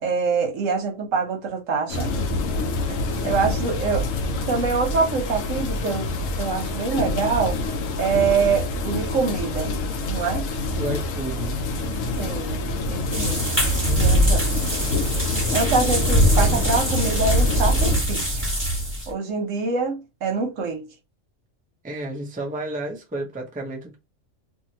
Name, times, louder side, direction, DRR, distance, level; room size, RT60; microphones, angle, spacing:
voice 1, 0.0-2.1 2.9-3.0 3.2-4.0 4.5-6.1 6.3-7.6 8.0-9.7 10.1-10.5 12.2-12.6 12.9-13.4 14.0-14.4 15.5-18.4 19.1-20.9, right 4 dB, 80° right, 1.2 m, -25 dB
sound 1, 1.9-18.0, left 2 dB, 85° left, 1.0 m, -27 dB
voice 2, 10.7-11.6 13.7-14.4 21.8-24.0, right 2 dB, 10° right, 0.5 m, -32 dB
sound 2, 13.1-19.1, equal, 10° left, 1.3 m, -22 dB
2.7 x 2.5 x 2.8 m
omnidirectional pair, 1.3 m